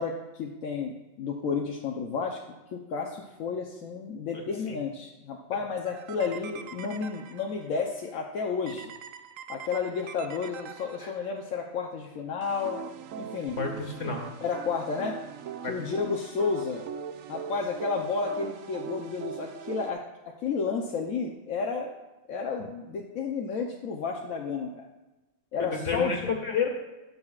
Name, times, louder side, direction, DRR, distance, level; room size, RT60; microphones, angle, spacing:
voice 1, 0.0-8.9 9.5-12.8 13.2-13.6 14.4-15.2 15.7-16.8 17.3-20.0 20.4-21.9 22.3-24.9 25.5-26.3, left 5 dB, 85° left, 0 dB, 1.2 m, -31 dB
sound 1, 5.9-7.8 8.7-11.5 12.4-19.9, right 7 dB, 85° right, 1.0 m, -41 dB
voice 2, 13.6-14.2 15.6-15.7 25.6-26.7, left 5 dB, 65° left, 2 dB, 2.0 m, -30 dB
19.5 x 6.7 x 2.4 m, 1.1 s
omnidirectional pair, 1.4 m